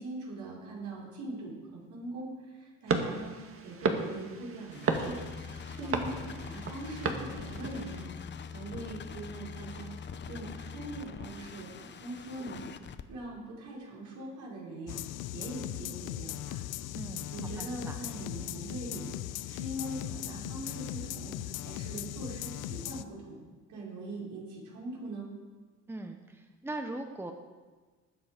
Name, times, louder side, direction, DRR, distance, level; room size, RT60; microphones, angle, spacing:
voice 1, 0.0-5.2 5.5-15.0 15.3-16.6 17.3-23.4 23.7-25.3, right 2 dB, 65° right, -4 dB, 5.0 m, -42 dB
sound 1, 2.9-8.0, right 4 dB, 45° right, 1.9 m, -34 dB
sound 2, 4.7-13.0, left 6 dB, 35° left, 0.9 m, -43 dB
sound 3, 14.9-23.0, left 14 dB, 80° left, 0.7 m, -38 dB
voice 2, 16.9-17.3 17.6-18.0 25.9-27.3, right 2 dB, 5° right, 5 dB, 1.1 m, -40 dB
19.5 x 8.0 x 5.2 m, 1.4 s
cardioid pair, 105°, 31 cm